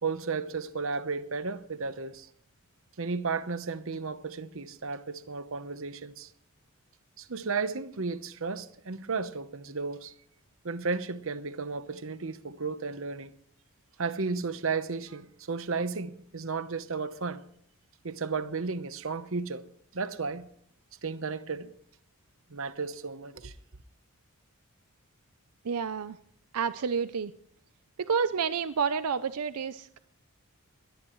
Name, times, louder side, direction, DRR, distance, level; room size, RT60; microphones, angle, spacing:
voice 1, 0.0-2.3 3.0-6.3 7.2-10.1 10.6-13.3 14.0-17.4 18.0-19.7 19.9-20.5 21.0-21.7 22.5-23.5, right 4 dB, 60° right, 0.9 m, -33 dB
voice 2, 25.6-26.2 26.5-27.3 28.0-30.0, right 6 dB, 85° right, 0.5 m, -29 dB
21.5 x 18.5 x 3.1 m
head